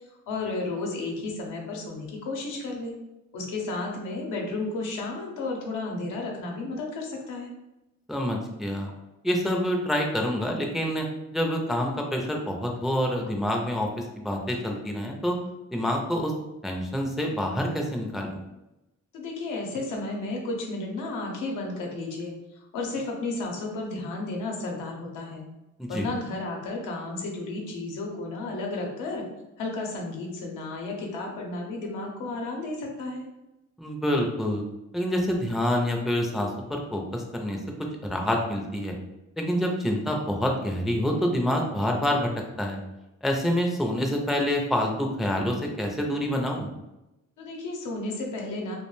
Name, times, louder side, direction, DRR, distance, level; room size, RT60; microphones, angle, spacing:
voice 1, 0.3-3.0 3.3-7.5 19.1-25.4 25.9-29.2 29.6-33.2 47.4-48.8, left 2 dB, 90° left, 0 dB, 0.7 m, -33 dB
voice 2, 8.1-8.9 9.2-11.1 11.3-15.4 15.7-16.3 16.6-18.4 25.8-26.1 33.8-34.6 34.9-37.6 38.1-38.9 39.4-42.3 42.6-42.8 43.2-46.7, equal, ahead, 1 dB, 0.3 m, -27 dB
2.3 x 2.1 x 3.0 m, 0.95 s
cardioid pair, 90°, 30 cm